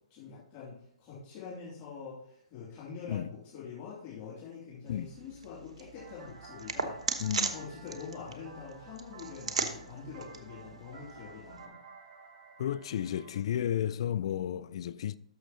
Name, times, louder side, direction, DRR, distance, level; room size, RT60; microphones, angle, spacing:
voice 1, 0.1-7.2 7.5-11.8, left 6 dB, 35° left, 2.5 m, -45 dB
sound 1, 4.9-11.7, right 5 dB, 65° right, 1.1 m, -39 dB
sound 2, 6.0-13.4, right 4 dB, 40° right, 1.6 m, -53 dB
voice 2, 7.2-7.6 12.6-15.1, left 10 dB, 55° left, 0.4 m, -32 dB
12.0 x 6.4 x 2.8 m
figure-of-eight pair, 125°, 4 cm